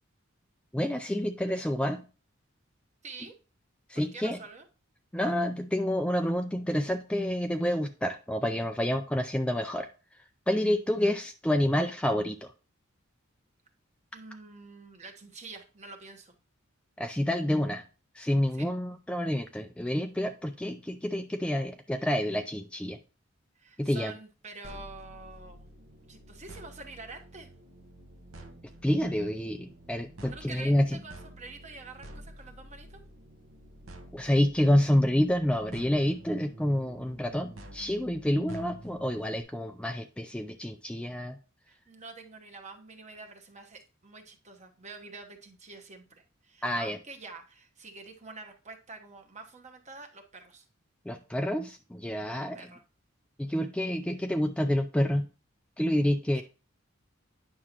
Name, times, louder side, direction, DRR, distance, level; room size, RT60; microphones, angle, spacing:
voice 1, 0.7-2.1 3.9-4.4 5.1-9.9 10.5-12.5 17.0-17.8 18.1-23.0 23.8-24.1 28.8-31.0 34.1-41.4 46.6-47.0 51.1-52.7 53.4-55.3 55.8-56.4, left 1 dB, 5° left, 6 dB, 0.3 m, -28 dB
voice 2, 3.0-3.3 4.1-4.6 11.0-11.1 14.1-16.3 18.5-18.7 23.6-25.7 26.1-27.5 30.2-33.0 41.7-50.6 52.3-52.8 56.3-56.4, right 3 dB, 35° right, 4 dB, 1.1 m, -47 dB
sound 1, 24.6-39.4, right 1 dB, 75° right, 1.1 m, -49 dB
9.4 x 6.1 x 2.9 m, 0.34 s
head